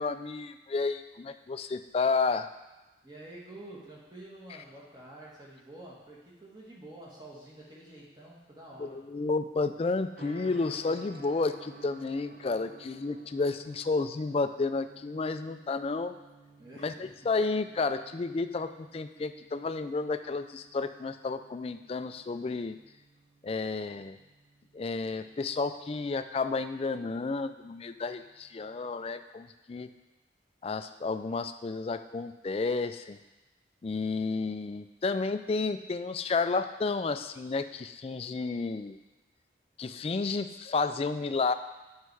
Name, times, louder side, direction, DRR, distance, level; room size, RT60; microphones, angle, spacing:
voice 1, 0.0-2.5 8.8-16.1 16.8-16.9 17.3-22.8 23.4-24.2 24.7-29.9 30.6-33.2 33.8-39.0 39.8-41.5, left 4 dB, 30° left, 10 dB, 0.3 m, -31 dB
voice 2, 3.0-9.0 16.6-17.3, right 1 dB, 20° right, -5 dB, 1.7 m, -48 dB
Gong, 10.1-29.1, right 2 dB, 50° right, 1.0 m, -55 dB
8.3 x 5.5 x 4.7 m, 1.1 s
head